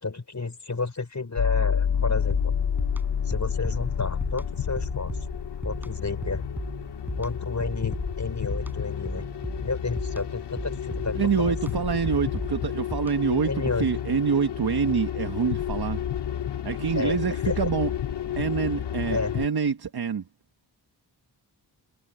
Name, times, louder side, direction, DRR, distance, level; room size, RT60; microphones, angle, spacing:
voice 1, 0.0-2.5 3.3-5.2 5.6-6.5 7.2-9.3 9.6-11.8 13.4-13.9 17.0-17.6 19.1-19.3, left 3 dB, 40° left, 5.2 m, -31 dB
sound 1, 1.4-19.5, left 8 dB, 75° left, 1.1 m, -30 dB
sound 2, 2.3-13.4, equal, 5° right, 7.6 m, -37 dB
voice 2, 11.1-16.0 16.6-17.9 18.4-20.2, right 6 dB, 60° right, 1.4 m, -26 dB
wide cardioid pair, 80°, 42 cm